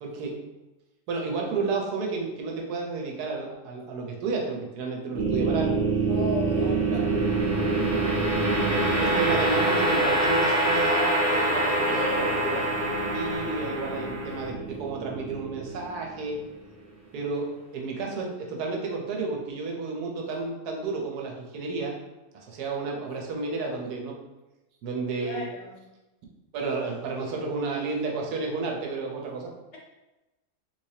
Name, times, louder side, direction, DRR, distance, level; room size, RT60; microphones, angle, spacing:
voice 1, 0.0-0.5 1.1-5.8 6.7-7.1 9.0-12.6 13.1-16.5 17.1-22.0 22.3-24.2 24.8-25.5 26.5-29.5, right 3 dB, 85° right, 0 dB, 1.2 m, -32 dB
sound 1, 5.1-16.3, right 2 dB, 45° right, 0.9 m, -25 dB
voice 2, 6.1-6.8 11.8-12.3 25.2-25.8, left 1 dB, 55° left, -4 dB, 0.9 m, -34 dB
3.4 x 3.2 x 2.7 m, 1.0 s
omnidirectional pair, 1.6 m